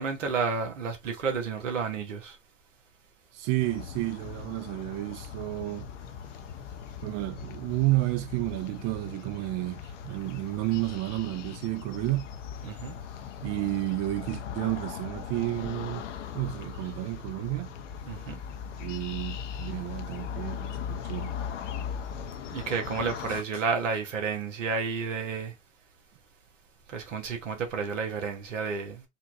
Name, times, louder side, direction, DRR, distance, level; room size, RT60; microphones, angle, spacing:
voice 1, 0.0-2.3 12.6-13.0 18.1-18.4 22.5-25.5 26.9-29.0, right 5 dB, 80° right, 1.1 m, -31 dB
voice 2, 3.3-5.9 7.0-12.3 13.4-16.1 16.3-17.7 18.8-21.3, right 20 dB, 45° right, 0.4 m, -31 dB
sound 1, 3.6-23.4, left 8 dB, 75° left, 0.6 m, -39 dB
4.2 x 2.2 x 2.6 m
figure-of-eight pair, 75°, 37 cm